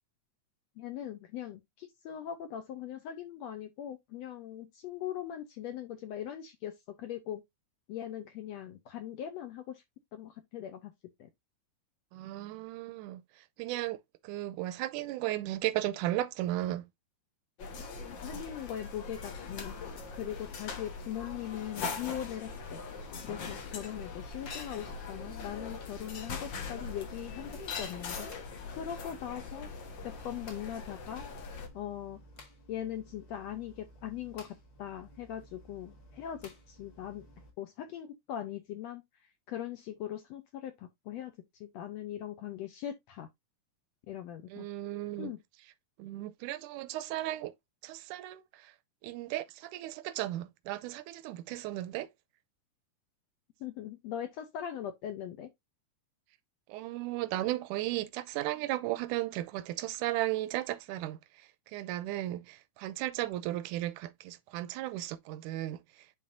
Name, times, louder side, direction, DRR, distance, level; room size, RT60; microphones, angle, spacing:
voice 1, 0.8-7.4 7.9-9.8 10.1-10.9 11.2-11.3 18.0-19.7 20.1-22.8 23.2-28.3 28.8-29.7 30.0-31.3 31.7-32.2 32.7-37.2 37.6-39.0 39.5-41.3 41.6-43.3 44.1-44.7 45.2-45.4 53.6-55.5, left 10 dB, 75° left, 1.6 m, -40 dB
voice 2, 12.1-13.2 13.6-14.0 14.2-16.8 44.5-45.3 46.0-47.5 47.8-48.7 49.0-52.1 56.7-61.2 61.7-65.8, right 15 dB, 80° right, 2.0 m, -35 dB
sound 1, 17.6-31.7, left 4 dB, 60° left, 1.2 m, -41 dB
sound 2, 24.0-37.5, equal, 45° left, 2.1 m, -55 dB
10.0 x 3.8 x 2.6 m
omnidirectional pair, 3.7 m